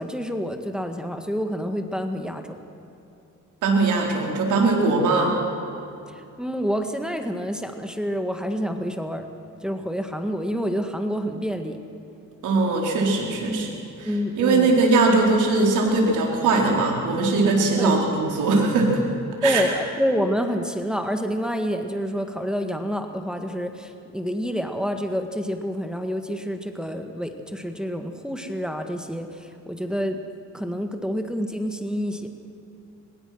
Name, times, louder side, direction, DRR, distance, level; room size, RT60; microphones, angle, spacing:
voice 1, 0.0-2.6 6.1-9.3 9.6-11.8 13.5-13.8 14.1-14.8 17.8-18.0 19.4-30.2 30.5-32.3, equal, 5° right, 5 dB, 1.8 m, -28 dB
voice 2, 3.6-5.3 12.4-13.7 14.4-19.0 19.4-19.6, right 3 dB, 85° right, 0 dB, 4.8 m, -20 dB
24.5 x 21.5 x 6.2 m, 2.8 s
cardioid pair, 90°, 30 cm